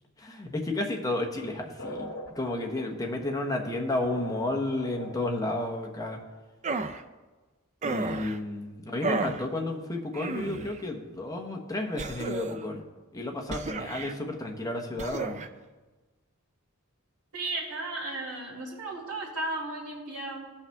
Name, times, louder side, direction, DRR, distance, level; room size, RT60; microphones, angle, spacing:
voice 1, 0.2-2.1 2.3-6.2 7.8-12.8 13.1-15.4, left 2 dB, 15° left, 2 dB, 1.0 m, -32 dB
sound 1, 1.8-5.5, equal, 70° left, 1.5 m, -41 dB
sound 2, 6.6-7.0 7.8-8.4 9.0-9.4 10.1-10.8 12.0-12.7 13.5-14.2 15.0-15.5, right 4 dB, 30° right, 0.4 m, -33 dB
voice 2, 17.3-20.4, right 2 dB, 80° right, -3 dB, 2.5 m, -35 dB
16.5 x 5.6 x 3.4 m, 1.3 s
head